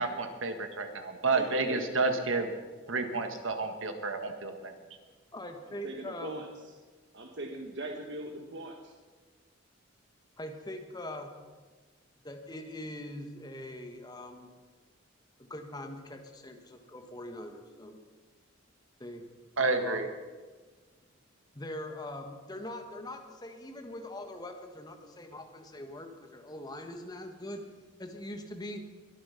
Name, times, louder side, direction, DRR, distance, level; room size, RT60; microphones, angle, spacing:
voice 1, 0.0-2.5 2.9-4.7 19.6-20.1, right 3 dB, 85° right, 6 dB, 1.7 m, -30 dB
voice 2, 1.3-1.9 5.8-6.4 7.1-8.9, right 1 dB, 65° right, 2 dB, 1.3 m, -40 dB
voice 3, 5.3-6.4 10.4-11.3 12.2-14.5 15.4-18.0 19.0-19.2 19.6-20.1 21.5-27.6 28.0-28.8, left 1 dB, 20° left, 4 dB, 1.6 m, -42 dB
22.5 x 8.9 x 5.9 m, 1.3 s
head